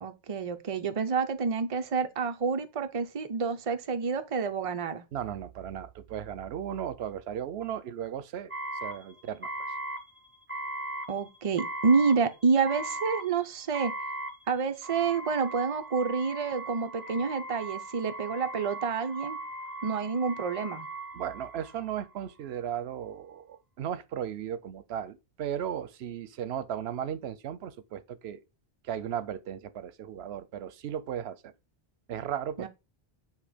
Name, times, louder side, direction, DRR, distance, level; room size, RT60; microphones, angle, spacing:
voice 1, 0.0-5.0 11.1-13.9 14.5-19.4 19.8-20.9 32.6-32.7, right 5 dB, 40° right, 0.7 m, -28 dB
voice 2, 5.1-8.5 8.8-9.5 21.1-28.4 28.8-31.5 32.1-32.7, right 9 dB, 85° right, 0.9 m, -36 dB
sound 1, 8.5-22.1, right 2 dB, 10° right, 1.4 m, -38 dB
8.1 x 3.0 x 5.0 m
omnidirectional pair, 1.0 m